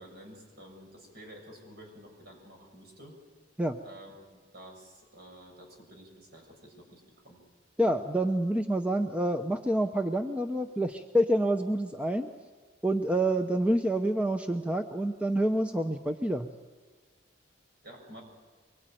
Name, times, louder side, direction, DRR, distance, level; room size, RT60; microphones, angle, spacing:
voice 1, 0.0-3.2 3.8-7.4 17.8-18.2, equal, 55° right, 2 dB, 6.9 m, -50 dB
voice 2, 7.8-12.3 12.8-16.5, right 1 dB, 5° right, 6 dB, 0.7 m, -27 dB
24.0 x 22.5 x 9.1 m, 1.4 s
head